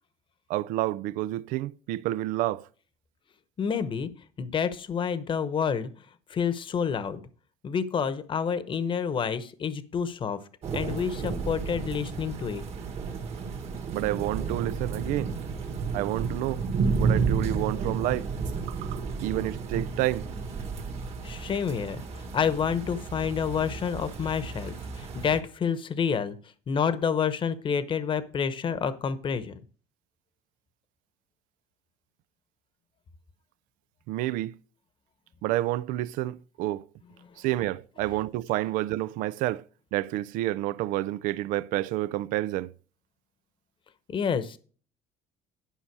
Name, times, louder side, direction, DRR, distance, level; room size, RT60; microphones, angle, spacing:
voice 1, 0.5-2.7 13.9-15.3 15.9-16.6 17.0-18.3 18.7-20.3 34.1-34.5 35.4-36.9 37.4-39.6 39.9-42.7, right 15 dB, 75° right, 0.5 m, -29 dB
voice 2, 3.6-4.1 4.4-5.9 6.3-7.2 7.6-10.4 10.7-12.6 21.2-22.0 22.3-26.4 26.7-29.6 37.2-37.3 44.1-44.6, left 7 dB, 35° left, 1.0 m, -28 dB
sound 1, 10.6-25.4, right 5 dB, 50° right, 1.9 m, -32 dB
11.5 x 5.5 x 4.7 m
cardioid pair, 105°, 14 cm